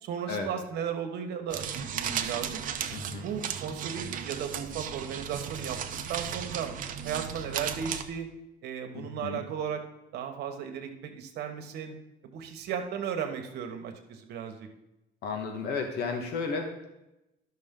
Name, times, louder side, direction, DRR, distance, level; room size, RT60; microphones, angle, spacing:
voice 1, 0.0-2.6 3.2-5.8 6.1-6.7 7.0-8.3 8.6-9.8 10.1-12.0 12.2-14.7, right 8 dB, 75° right, 5 dB, 1.3 m, -35 dB
sound 1, 1.5-8.0, right 8 dB, 50° right, 0.7 m, -35 dB
voice 2, 2.9-3.2 8.9-9.4 15.2-16.9, left 4 dB, 75° left, 4 dB, 1.4 m, -33 dB
11.5 x 6.3 x 3.7 m, 0.92 s
cardioid pair, 110°, 17 cm